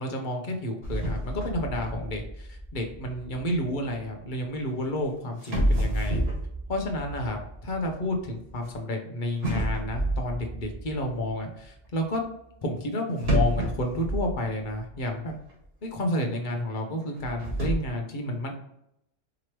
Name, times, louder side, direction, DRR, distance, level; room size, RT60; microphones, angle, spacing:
voice 1, 0.0-6.2 6.7-12.2 12.6-15.3 15.8-18.5, left 1 dB, 45° left, 2 dB, 0.9 m, -30 dB
sound 1, 0.8-4.0 4.9-5.0 5.4-8.8 9.4-11.3 13.2-15.0 15.3-15.4 16.0-16.1 17.1-17.8, equal, 55° right, 1.8 m, -29 dB
5.0 x 3.1 x 3.0 m, 0.77 s
omnidirectional pair, 1.2 m